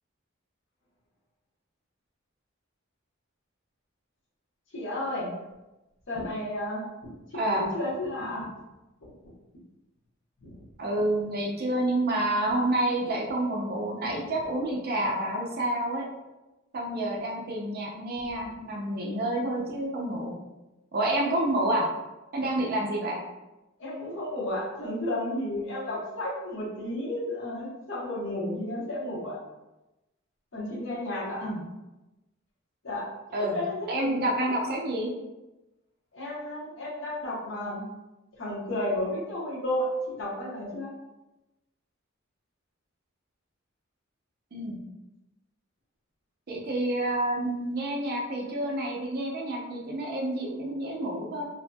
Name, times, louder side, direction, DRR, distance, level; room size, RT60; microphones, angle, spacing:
voice 1, 4.7-5.3 6.1-6.8 7.3-8.5 9.0-9.3 10.4-10.6 23.8-29.4 30.5-31.6 32.8-33.1 33.4-34.6 36.1-37.9 38.4-40.9, left 1 dB, 70° left, -7 dB, 0.9 m, -32 dB
voice 2, 7.3-7.7 10.8-16.1 16.7-20.3 20.9-21.9 22.3-23.2 31.4-31.6 33.3-33.6 33.9-35.1 44.5-44.8 46.5-51.5, right 1 dB, 50° right, -1 dB, 0.5 m, -28 dB
2.6 x 2.6 x 2.2 m, 1.0 s
head